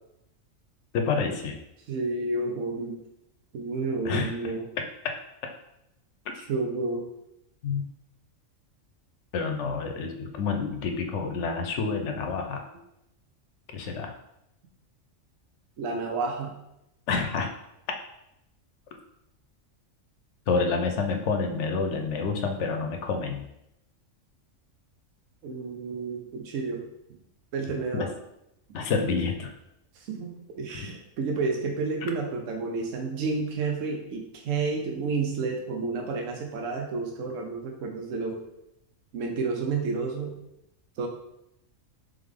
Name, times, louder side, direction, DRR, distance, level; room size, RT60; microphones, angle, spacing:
voice 1, 0.9-1.6 4.0-4.3 5.0-5.1 7.6-7.9 9.3-12.6 13.7-14.1 17.1-17.5 20.5-23.5 27.9-28.1 28.7-29.5 30.8-30.9, left 4 dB, 70° left, 4 dB, 0.9 m, -28 dB
voice 2, 1.9-3.0 3.5-4.6 6.4-7.1 15.8-16.5 25.4-26.9 27.5-28.1 30.0-38.4 39.1-40.3 41.0-41.1, right 4 dB, 75° right, 1 dB, 1.0 m, -30 dB
3.6 x 3.4 x 3.5 m, 0.83 s
omnidirectional pair, 1.3 m